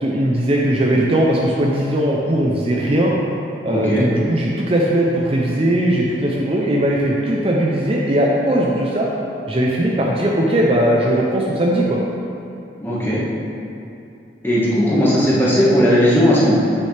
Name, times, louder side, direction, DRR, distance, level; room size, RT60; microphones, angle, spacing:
voice 1, 0.0-3.1 3.6-9.1 9.5-12.0, right 1 dB, 35° right, -2 dB, 0.6 m, -18 dB
voice 2, 3.7-4.0 12.8-13.2 14.4-16.5, equal, 15° left, -8 dB, 1.5 m, -16 dB
8.1 x 6.5 x 3.4 m, 2.7 s
head